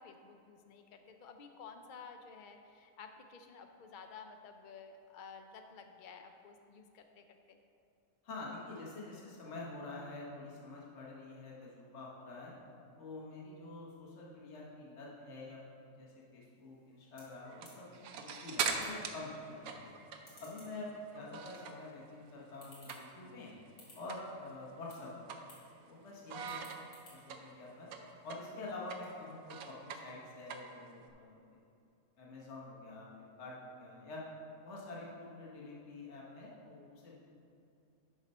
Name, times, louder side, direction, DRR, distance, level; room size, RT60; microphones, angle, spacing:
voice 1, 0.0-7.6, left 5 dB, 70° left, 5 dB, 0.4 m, -53 dB
voice 2, 8.2-12.5 13.0-20.0 20.4-23.5 23.9-25.3 25.9-26.6 27.1-27.9 28.2-31.6 32.2-33.1 33.4-34.2 34.6-37.2, left 2 dB, 55° left, -4 dB, 1.4 m, -47 dB
sound 1, 16.5-29.3, left 2 dB, 85° left, 2.5 m, -64 dB
sound 2, 17.4-21.9 22.3-23.4 23.7-23.8 24.1-24.3 24.7-25.9 26.3-31.1, right 6 dB, 85° right, 1.2 m, -41 dB
11.0 x 4.1 x 5.4 m, 2.6 s
omnidirectional pair, 1.5 m